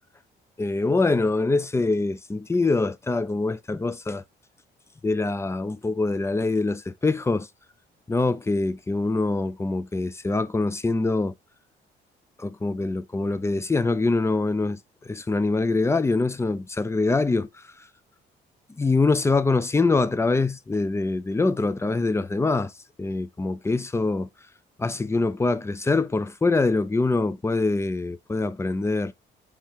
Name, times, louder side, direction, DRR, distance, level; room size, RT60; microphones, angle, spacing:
voice 1, 0.6-4.2 5.0-7.5 8.1-11.3 12.4-14.8 15.1-17.5 18.8-22.7 23.0-24.3 24.8-29.1, left 3 dB, 15° left, 0.5 m, -24 dB
5.4 x 3.5 x 2.9 m
cardioid pair, 90°, 20 cm